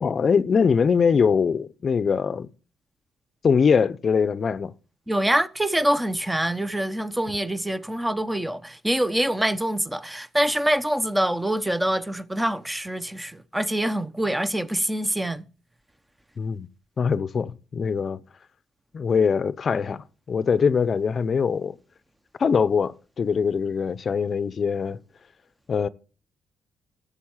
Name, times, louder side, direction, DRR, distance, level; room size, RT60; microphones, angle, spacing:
voice 1, 0.0-2.5 3.4-4.7 16.4-16.7 17.0-18.2 18.9-21.8 22.4-25.0 25.7-25.9, left 6 dB, 45° left, 0.7 m, -22 dB
voice 2, 5.1-15.4, right 1 dB, 10° right, 0.9 m, -25 dB
13.5 x 7.2 x 7.3 m
cardioid pair, 90°, 0 cm